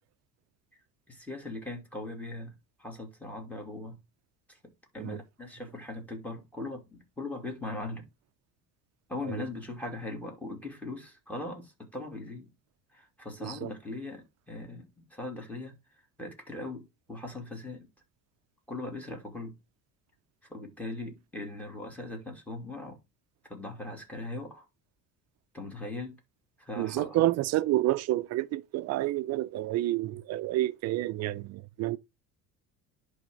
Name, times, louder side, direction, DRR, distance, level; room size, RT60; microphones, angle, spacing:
voice 1, 1.1-4.0 4.5-4.6 4.9-8.1 9.1-12.5 12.9-15.8 16.2-17.9 18.7-19.6 20.5-23.0 23.5-24.6 25.5-26.2 26.6-27.3, left 2 dB, 5° left, 2.7 m, -40 dB
voice 2, 26.8-32.0, right 15 dB, 50° right, 0.5 m, -29 dB
10.5 x 3.6 x 5.1 m
cardioid pair, 140°, 34 cm